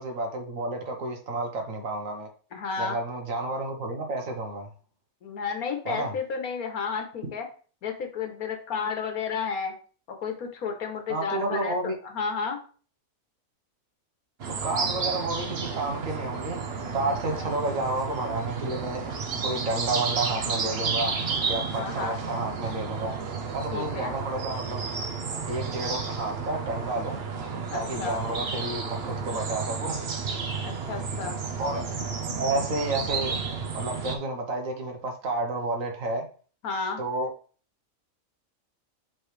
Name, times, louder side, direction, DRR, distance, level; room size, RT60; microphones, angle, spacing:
voice 1, 0.0-2.3 2.8-4.7 5.9-6.1 11.1-12.0 14.5-16.6 16.9-19.1 19.4-21.1 21.4-23.2 23.5-24.9 25.5-27.2 27.7-30.0 31.6-31.8 32.4-33.4 33.7-36.3 37.0-37.3, right 2 dB, 70° right, 3 dB, 1.6 m, -30 dB
voice 2, 2.5-3.0 5.2-7.5 7.8-9.7 10.1-12.6 17.1-17.4 21.7-22.2 23.7-24.2 27.7-28.2 30.6-31.4 36.6-37.0, left 5 dB, 80° left, 5 dB, 1.6 m, -32 dB
sound 1, 14.4-34.2, right 5 dB, 50° right, 1.0 m, -32 dB
7.7 x 4.1 x 3.3 m, 0.40 s
omnidirectional pair, 1.5 m